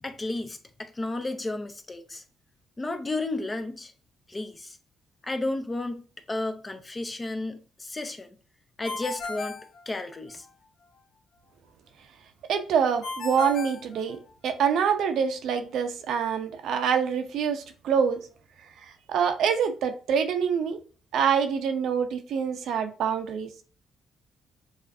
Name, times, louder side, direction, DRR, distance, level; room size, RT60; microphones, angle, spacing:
voice 1, 0.0-2.2 2.8-3.9 4.3-4.8 5.2-8.3 8.8-9.6 9.9-10.5, left 2 dB, 25° left, 0.5 m, -33 dB
Ringtone, 8.8-10.5 13.0-14.7, left 3 dB, 80° left, 0.6 m, -36 dB
voice 2, 12.5-14.2 14.4-18.2 18.8-20.8 21.1-23.5, right 7 dB, 75° right, 0.6 m, -25 dB
6.5 x 2.5 x 2.6 m
cardioid pair, 90°, 0 cm